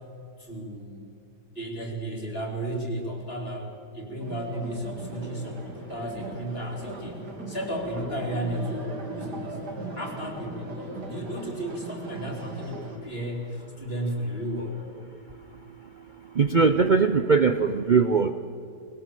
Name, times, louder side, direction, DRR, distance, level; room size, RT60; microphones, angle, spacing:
voice 1, 0.4-1.0 1.5-7.2 7.5-9.6 9.9-14.8, right 1 dB, 35° left, 1 dB, 3.3 m, -34 dB
sound 1, 4.2-13.0, right 1 dB, 80° right, 3.2 m, -38 dB
voice 2, 16.4-18.3, right 5 dB, 60° right, 9 dB, 0.5 m, -20 dB
20.0 x 17.5 x 7.6 m, 2.5 s
omnidirectional pair, 1.7 m